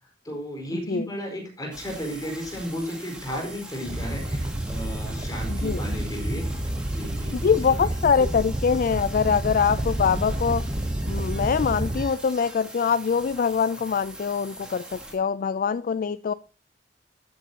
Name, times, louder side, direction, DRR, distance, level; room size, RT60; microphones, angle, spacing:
voice 1, 0.0-7.8 8.2-8.3, equal, 20° left, 0 dB, 4.5 m, -34 dB
sound 1, 1.7-15.1, right 1 dB, 5° right, 2.5 m, -42 dB
Animal, 3.8-12.0, right 1 dB, 25° right, 0.9 m, -29 dB
voice 2, 5.5-5.8 7.3-10.6 11.1-16.3, left 6 dB, 50° left, 15 dB, 0.4 m, -24 dB
13.0 x 9.0 x 2.8 m, 0.37 s
head